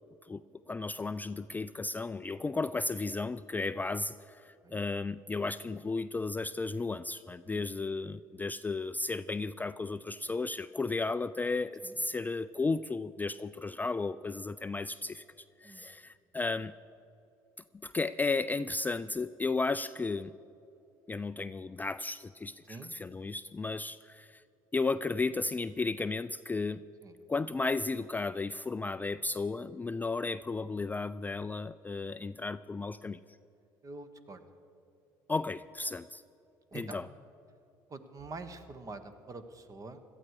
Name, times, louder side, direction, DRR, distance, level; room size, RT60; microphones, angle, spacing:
voice 1, 0.7-15.2 15.6-16.7 17.8-20.3 21.1-24.4 24.7-26.8 27.3-33.2 35.3-36.2 36.7-37.1, left 3 dB, 15° left, 14 dB, 0.3 m, -34 dB
voice 2, 33.8-34.4 36.7-37.0 37.9-40.0, right 3 dB, 35° right, 10 dB, 1.4 m, -45 dB
17.5 x 13.0 x 4.9 m, 2.8 s
hypercardioid pair, 65°, 10 cm